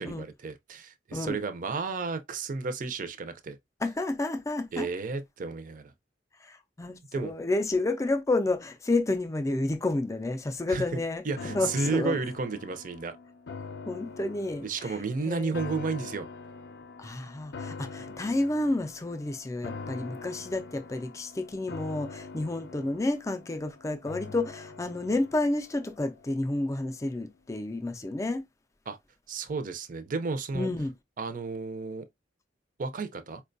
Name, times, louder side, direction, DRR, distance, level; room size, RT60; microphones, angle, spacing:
voice 1, 0.0-3.6 4.7-5.9 7.1-7.3 10.7-13.2 14.6-16.3 28.9-29.0 29.3-30.7 31.2-32.0 32.8-33.4, right 4 dB, 50° right, 0.5 m, -32 dB
voice 2, 3.8-4.9 6.4-11.2 11.5-12.2 13.9-14.9 15.2-15.5 17.0-28.4 30.5-30.9, left 2 dB, 20° left, 0.4 m, -30 dB
sound 1, 11.4-26.7 27.0-27.1, left 4 dB, 75° left, 0.4 m, -44 dB
4.4 x 2.2 x 2.5 m
head